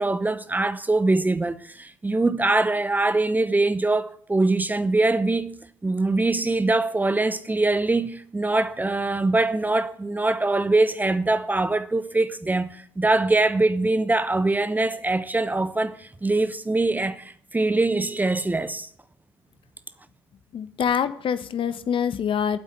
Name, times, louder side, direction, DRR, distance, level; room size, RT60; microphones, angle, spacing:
voice 1, 0.0-5.6 5.8-18.9, right 2 dB, 15° right, 0.9 m, -23 dB
voice 2, 20.5-22.6, left 8 dB, 45° left, 1.2 m, -25 dB
14.0 x 8.3 x 9.4 m
figure-of-eight pair, 55°, 12 cm